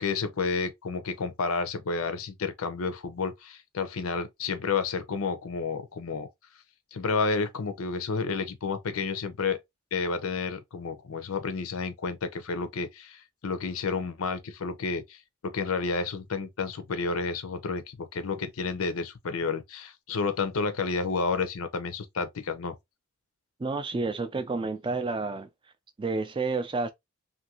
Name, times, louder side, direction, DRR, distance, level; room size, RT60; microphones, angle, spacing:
voice 1, 0.0-6.3 6.9-9.6 9.9-22.8, left 4 dB, 85° left, 0.6 m, -31 dB
voice 2, 23.6-25.5 26.0-26.9, right 3 dB, 25° right, 0.3 m, -30 dB
2.6 x 2.5 x 2.8 m
head